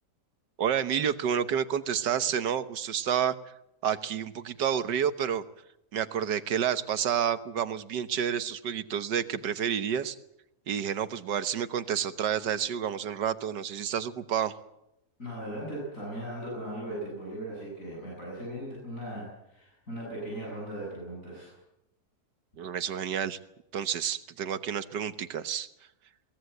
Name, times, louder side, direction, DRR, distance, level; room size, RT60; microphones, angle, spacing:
voice 1, 0.6-3.3 3.8-5.4 5.9-10.2 10.7-14.6 22.6-23.4 23.7-25.7, right 8 dB, 85° right, 12 dB, 1.7 m, -29 dB
voice 2, 15.2-21.5, right 1 dB, 50° left, -4 dB, 8.0 m, -38 dB
22.5 x 19.0 x 7.9 m, 0.84 s
omnidirectional pair, 1.8 m